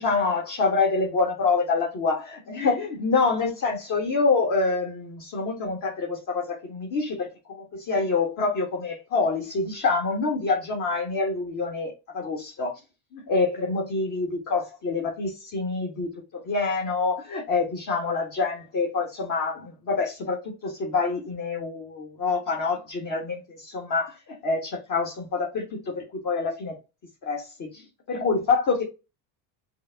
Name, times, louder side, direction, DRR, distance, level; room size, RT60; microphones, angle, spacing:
voice 1, 0.0-12.8 13.1-26.8 27.2-28.8, left 4 dB, 45° left, 1.5 m, -26 dB
5.2 x 2.0 x 3.4 m
cardioid pair, 135°, 44 cm